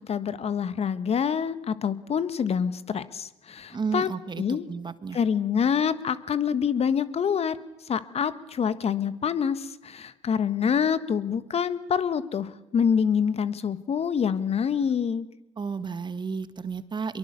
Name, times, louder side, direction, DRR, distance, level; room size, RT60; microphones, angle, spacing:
voice 1, 0.1-4.1 4.4-4.7 5.1-7.6 7.9-15.2, left 7 dB, 40° left, 14 dB, 1.4 m, -26 dB
voice 2, 3.7-5.2 15.6-17.2, right 5 dB, 30° right, 13 dB, 1.6 m, -32 dB
24.5 x 23.0 x 6.8 m, 0.96 s
hypercardioid pair, 65°, 15 cm